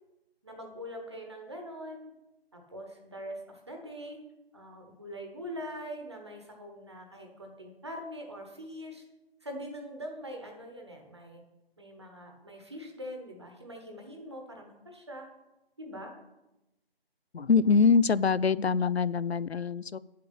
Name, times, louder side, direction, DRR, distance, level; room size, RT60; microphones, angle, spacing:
voice 1, 0.4-2.1 2.5-4.2 4.5-9.0 9.4-11.4 11.8-15.3 15.8-16.1, equal, 25° right, 2 dB, 1.2 m, -43 dB
voice 2, 17.3-20.0, left 5 dB, 85° left, 20 dB, 0.5 m, -24 dB
9.3 x 7.6 x 6.0 m, 0.97 s
figure-of-eight pair, 165°, 31 cm